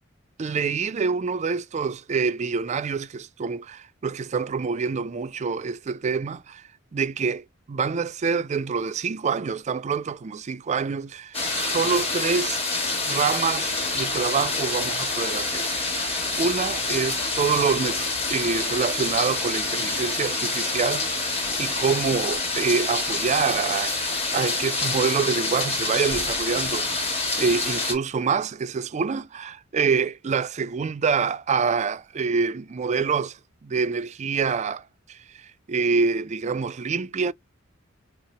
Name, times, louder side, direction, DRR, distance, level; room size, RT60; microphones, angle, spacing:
voice 1, 0.4-6.6 6.9-12.6 13.0-34.8 35.1-37.3, right 5 dB, 35° right, 0.4 m, -26 dB
sound 1, 11.3-27.9, left 3 dB, 30° left, 1.8 m, -27 dB
5.7 x 2.0 x 2.8 m
head